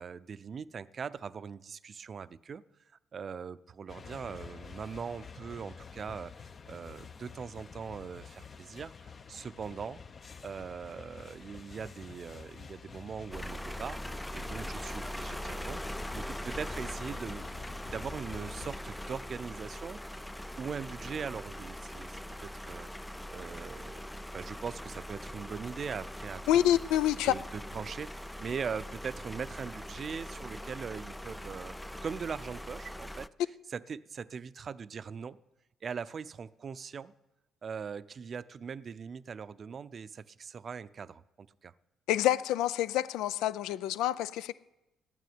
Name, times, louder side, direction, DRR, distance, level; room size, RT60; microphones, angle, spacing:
voice 1, 0.0-2.6 3.1-10.0 10.4-15.8 16.1-17.6 17.8-20.2 20.6-22.9 23.3-26.8 27.2-33.3 33.7-35.4 35.8-37.1 37.6-41.7, right 6 dB, 45° right, 0.5 m, -41 dB
sound 1, 3.9-18.8, left 6 dB, 40° left, 0.8 m, -49 dB
sound 2, 13.3-33.3, equal, 10° left, 0.4 m, -41 dB
voice 2, 26.5-27.3 42.1-44.5, left 12 dB, 85° left, 0.5 m, -27 dB
12.5 x 9.3 x 9.5 m
supercardioid pair, 75°, 0 cm